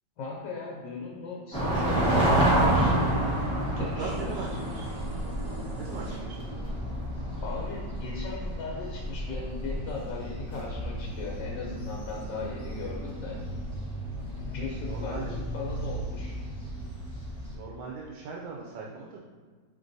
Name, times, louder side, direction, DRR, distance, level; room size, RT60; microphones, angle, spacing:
voice 1, 0.2-3.0 3.8-4.6 7.4-13.4 14.4-16.4 17.1-17.2, left 4 dB, 75° left, -2 dB, 1.3 m, -38 dB
sound 1, 1.5-17.5, right 1 dB, 5° left, 0.4 m, -30 dB
voice 2, 3.8-4.9 5.8-6.4 14.9-15.3 17.5-19.2, right 4 dB, 90° right, -2 dB, 1.3 m, -39 dB
sound 2, 4.0-6.2, right 2 dB, 70° right, 1.4 m, -44 dB
5.1 x 3.2 x 2.6 m, 1.5 s
omnidirectional pair, 2.0 m